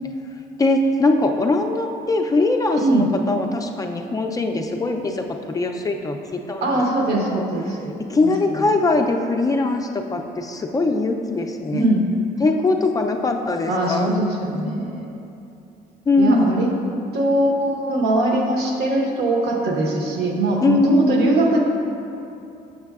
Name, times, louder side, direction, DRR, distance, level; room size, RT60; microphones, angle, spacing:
voice 1, 0.6-6.7 7.3-7.4 8.1-11.8 12.4-14.1 16.1-16.5 20.6-21.2, left 2 dB, 20° left, 3 dB, 0.3 m, -21 dB
voice 2, 6.6-8.7 11.7-12.0 13.5-15.2 16.2-16.7 17.1-21.6, right 1 dB, 75° right, 0 dB, 1.0 m, -21 dB
6.8 x 6.4 x 2.3 m, 2.7 s
cardioid pair, 110°, 17 cm